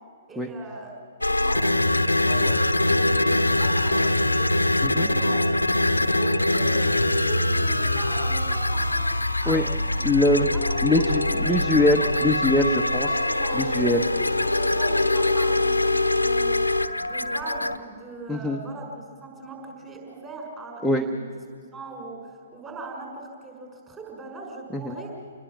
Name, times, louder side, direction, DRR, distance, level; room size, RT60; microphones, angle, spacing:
voice 1, 0.3-0.9 1.3-4.5 4.9-5.4 5.7-9.1 9.4-9.6 9.9-10.1 10.4-10.6 10.9-11.0 11.3-12.1 13.0-16.6 17.0-21.3 21.7-25.1, right 3 dB, 15° right, 1 dB, 5.9 m, -40 dB
sound 1, 1.2-17.8, left 2 dB, 85° left, 0.9 m, -23 dB
voice 2, 10.0-10.5 10.8-13.1 13.6-14.0 18.3-18.6 20.8-21.0 24.7-24.9, left 1 dB, ahead, 4 dB, 1.1 m, -22 dB
28.5 x 20.0 x 7.3 m, 2.3 s
figure-of-eight pair, 120°, 0 cm